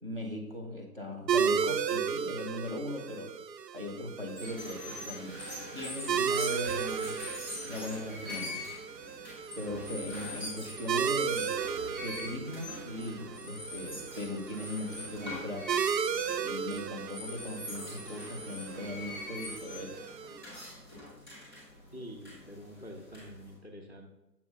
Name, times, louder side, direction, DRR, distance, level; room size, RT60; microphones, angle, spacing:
voice 1, 0.0-3.3 3.7-5.4 5.7-7.2 7.6-8.6 9.6-11.5 12.0-15.7 16.4-20.0, left 1 dB, 35° right, 0 dB, 0.7 m, -39 dB
sound 1, 1.3-20.4, right 7 dB, 90° right, 0.6 m, -35 dB
sound 2, 4.3-23.5, left 1 dB, 15° right, 1.6 m, -43 dB
voice 2, 21.9-24.1, equal, 45° left, 4 dB, 0.4 m, -46 dB
7.1 x 3.0 x 5.1 m, 1.0 s
hypercardioid pair, 175°, 48 cm